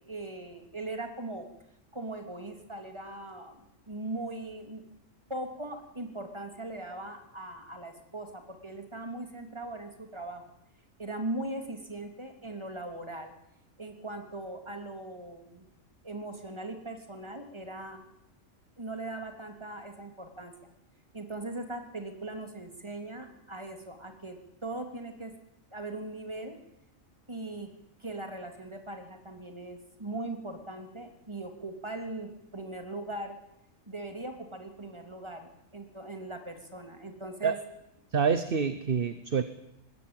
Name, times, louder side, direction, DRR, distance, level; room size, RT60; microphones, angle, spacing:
voice 1, 0.0-1.5 1.9-4.8 5.3-10.5 11.0-13.3 13.8-15.7 16.0-18.1 18.8-20.5 21.1-25.3 25.7-26.6 27.3-27.7 28.0-33.4 33.9-37.6, right 2 dB, 20° right, 5 dB, 2.8 m, -40 dB
voice 2, 38.1-39.4, right 6 dB, 45° right, 12 dB, 1.1 m, -27 dB
20.5 x 16.5 x 8.8 m, 0.85 s
omnidirectional pair, 1.3 m